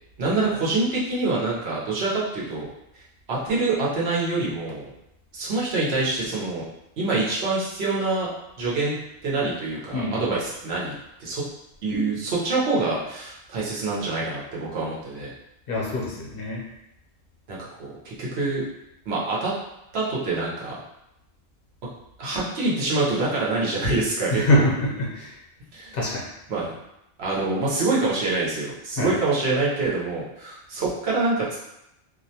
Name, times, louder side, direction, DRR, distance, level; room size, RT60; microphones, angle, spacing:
voice 1, 0.2-2.7 3.3-4.9 5.3-6.6 7.0-8.3 8.6-10.9 11.2-11.5 11.8-15.3 17.5-18.6 19.1-19.5 19.9-20.8 22.2-24.6 25.7-26.0 26.5-26.7 27.2-31.6, right 3 dB, 75° right, -6 dB, 1.0 m, -25 dB
voice 2, 9.9-10.3 15.7-16.6 24.3-25.4 25.9-26.3 29.0-29.1, left 1 dB, 65° left, -3 dB, 0.8 m, -24 dB
2.4 x 2.1 x 2.7 m, 0.85 s
omnidirectional pair, 1.1 m